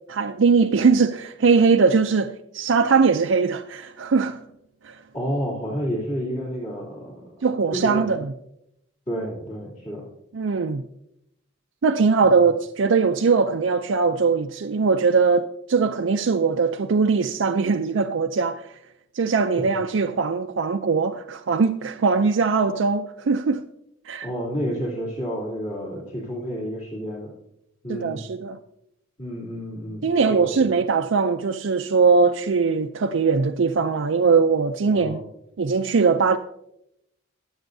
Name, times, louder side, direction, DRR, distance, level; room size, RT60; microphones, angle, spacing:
voice 1, 0.1-4.4 4.8-5.0 7.4-8.3 10.3-10.8 11.8-18.7 19.1-23.6 24.1-24.3 27.9-28.6 30.0-35.2 35.6-36.4, right 4 dB, 65° right, 0.5 m, -21 dB
voice 2, 5.1-7.5 7.7-8.1 9.1-10.0 12.2-12.3 19.6-19.7 24.2-27.3 27.8-28.2 29.2-30.7 34.8-35.2, equal, 35° left, 3.0 m, -30 dB
23.5 x 7.9 x 2.7 m
head